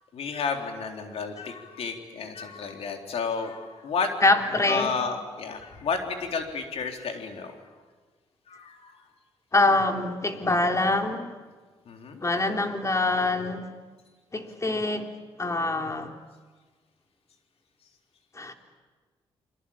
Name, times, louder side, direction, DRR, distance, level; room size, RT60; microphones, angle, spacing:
voice 1, 0.1-4.1 4.7-7.5 8.5-9.0 11.9-12.5, left 5 dB, 70° left, 4 dB, 3.8 m, -32 dB
voice 2, 4.2-4.9 9.5-11.3 12.2-13.7 14.3-15.1 15.4-16.2 18.3-18.5, left 2 dB, 30° left, 5 dB, 3.4 m, -24 dB
29.0 x 22.0 x 8.8 m, 1.4 s
supercardioid pair, 60°, 11 cm